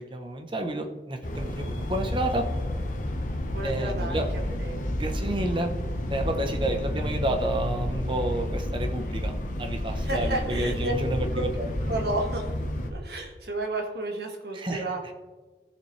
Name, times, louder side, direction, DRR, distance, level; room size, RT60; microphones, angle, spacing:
voice 1, 0.0-2.5 3.6-4.3 4.9-5.7 6.1-11.7 14.5-15.1, right 1 dB, 25° right, 4 dB, 0.9 m, -30 dB
sound 1, 1.2-12.9, left 1 dB, 45° left, 1.2 m, -30 dB
voice 2, 3.5-4.2 4.6-4.8 9.9-10.9 11.3-11.4 11.9-12.5 12.9-15.0, right 2 dB, 65° right, 2 dB, 1.7 m, -32 dB
15.5 x 7.1 x 3.3 m, 1.3 s
head